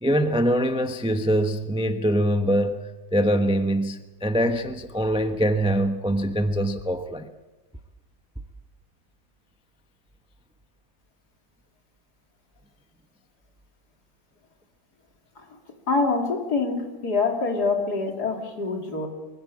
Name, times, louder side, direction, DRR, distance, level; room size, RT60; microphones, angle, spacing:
voice 1, 0.0-7.3, equal, 5° right, 0.5 m, -23 dB
voice 2, 15.9-19.1, left 4 dB, 50° left, 3.6 m, -25 dB
24.5 x 16.5 x 8.7 m
omnidirectional pair, 2.1 m